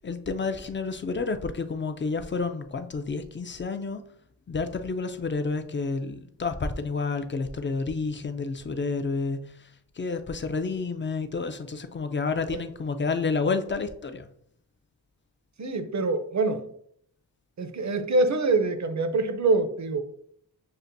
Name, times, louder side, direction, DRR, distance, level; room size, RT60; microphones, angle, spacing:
voice 1, 0.0-4.0 4.5-9.5 10.0-14.3, left 4 dB, 30° left, 8 dB, 0.3 m, -30 dB
voice 2, 15.6-16.7 17.6-20.0, right 3 dB, 45° right, 9 dB, 0.6 m, -25 dB
6.6 x 2.5 x 2.5 m, 0.68 s
wide cardioid pair, 95°, 40 cm